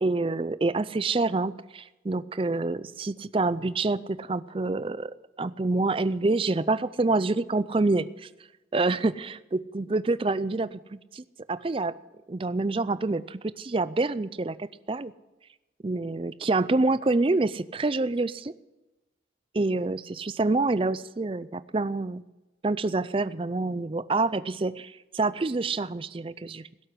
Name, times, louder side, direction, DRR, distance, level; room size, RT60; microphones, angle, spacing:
voice 1, 0.0-5.1 5.4-8.3 8.7-9.1 9.7-11.9 12.3-15.1 15.8-18.5 19.5-22.2 22.6-26.6, right 3 dB, 30° right, 17 dB, 0.4 m, -27 dB
17.0 x 7.9 x 9.8 m, 1.1 s
head